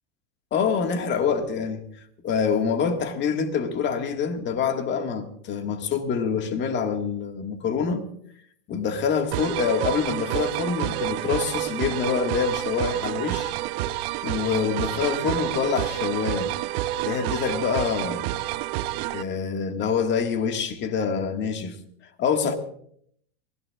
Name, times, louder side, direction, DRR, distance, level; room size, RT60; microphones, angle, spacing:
voice 1, 0.5-1.8 2.2-8.0 8.7-13.5 14.2-16.5 17.0-18.3 19.1-21.8 22.2-22.6, left 6 dB, 30° left, 1.8 m, -26 dB
sound 1, 9.3-19.2, right 14 dB, 50° right, 0.8 m, -29 dB
23.5 x 16.5 x 2.4 m
supercardioid pair, 130°, 35 cm